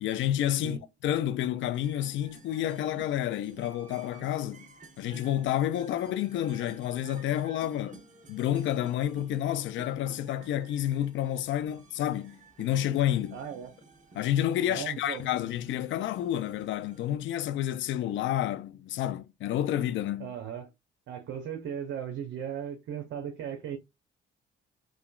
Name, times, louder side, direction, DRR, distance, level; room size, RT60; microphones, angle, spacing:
voice 1, 0.0-4.7 5.0-8.0 8.3-13.4 14.2-20.3, left 12 dB, 70° left, 0.4 m, -30 dB
sound 1, 1.6-17.2, right 3 dB, 40° right, 1.1 m, -53 dB
voice 2, 13.3-13.7 14.7-15.3 20.2-20.7 21.1-23.8, right 8 dB, 70° right, 0.7 m, -37 dB
2.8 x 2.3 x 2.3 m
cardioid pair, 90°, 20 cm